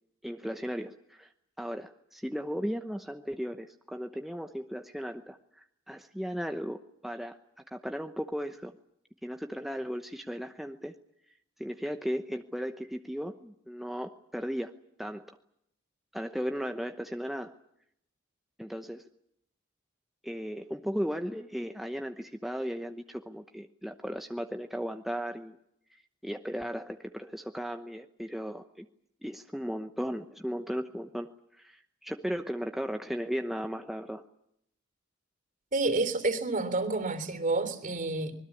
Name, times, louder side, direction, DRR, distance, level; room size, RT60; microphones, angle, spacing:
voice 1, 0.2-1.3 1.6-7.4 7.7-8.7 9.2-10.9 11.6-15.4 16.1-17.5 18.6-19.1 20.2-25.6 25.9-28.9 29.2-34.2, equal, ahead, 0.9 m, -36 dB
voice 2, 35.7-38.3, right 3 dB, 40° right, 3.4 m, -29 dB
25.5 x 21.0 x 8.5 m
head